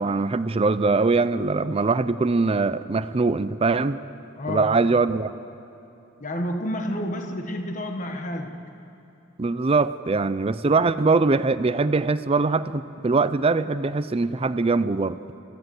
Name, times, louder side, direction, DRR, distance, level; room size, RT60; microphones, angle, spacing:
voice 1, 0.0-4.0 4.5-5.3 9.4-15.2, right 3 dB, 30° right, 13 dB, 0.5 m, -22 dB
voice 2, 4.4-4.8 6.2-8.6, left 1 dB, 40° left, 4 dB, 1.3 m, -30 dB
27.0 x 15.0 x 7.8 m, 3.0 s
head